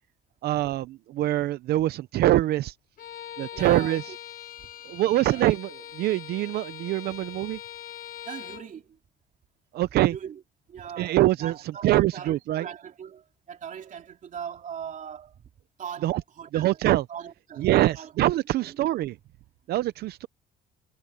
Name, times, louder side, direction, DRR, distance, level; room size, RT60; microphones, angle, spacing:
voice 1, 0.4-2.7 3.4-4.0 4.8-7.6 9.7-10.1 11.0-11.5 11.8-12.7 16.0-16.2 16.5-17.1 17.6-19.2 19.7-20.3, right 15 dB, 70° right, 0.7 m, -24 dB
Bowed string instrument, 3.0-8.7, left 11 dB, 60° left, 5.8 m, -42 dB
voice 2, 3.5-4.2 4.6-4.7 5.2-5.5 8.2-9.0 10.0-10.4 10.7-15.5 15.8-16.8 17.1-18.1 18.5-18.8, right 8 dB, 50° right, 3.2 m, -40 dB
cardioid pair, 110°, 17 cm